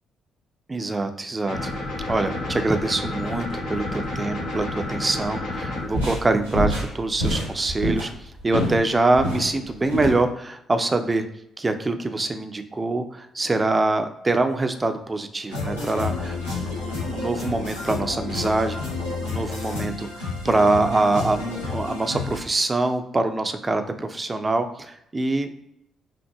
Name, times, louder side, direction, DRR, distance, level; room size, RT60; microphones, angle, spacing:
voice 1, 0.7-1.7 2.1-11.2 11.6-18.8 19.2-25.5, right 2 dB, 25° right, 7 dB, 0.5 m, -24 dB
sound 1, 1.5-5.9, left 2 dB, 70° left, 1.3 m, -30 dB
sound 2, 5.7-8.8 9.1-10.2, equal, 90° right, 1.2 m, -26 dB
sound 3, 15.5-22.4, left 3 dB, 85° left, 1.0 m, -30 dB
5.5 x 2.5 x 2.3 m, 0.78 s
figure-of-eight pair, 40°, 0 cm